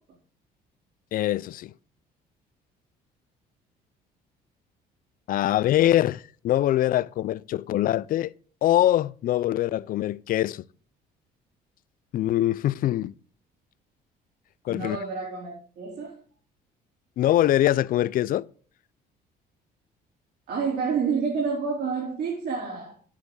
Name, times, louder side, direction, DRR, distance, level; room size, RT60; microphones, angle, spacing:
voice 1, 1.1-1.7 5.3-8.3 8.6-10.6 12.1-13.1 14.6-15.0 17.2-18.5, left 13 dB, 55° left, 0.5 m, -23 dB
voice 2, 14.7-16.2 20.5-23.0, right 5 dB, 65° right, 3.8 m, -29 dB
10.5 x 9.9 x 3.9 m
cardioid pair, 110°, 17 cm